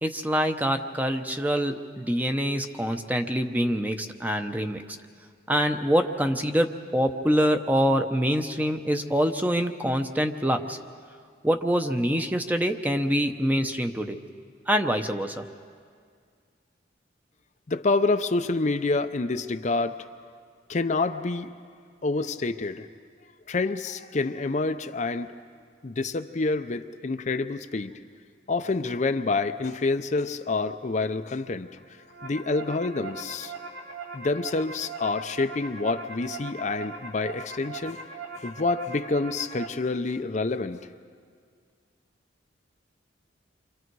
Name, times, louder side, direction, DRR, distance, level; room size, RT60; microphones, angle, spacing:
voice 1, 0.0-4.8 5.5-10.8 11.4-14.2 14.7-15.4, equal, 10° right, 6 dB, 0.8 m, -25 dB
voice 2, 17.7-20.1 20.7-21.5 22.0-22.9 23.5-25.3 25.8-27.9 28.5-31.7 32.2-33.5 34.1-38.0 38.4-40.8, left 3 dB, 40° left, 8 dB, 0.5 m, -27 dB
sound 1, 31.8-39.7, right 4 dB, 60° right, 3.0 m, -40 dB
29.0 x 25.0 x 4.7 m, 2.1 s
head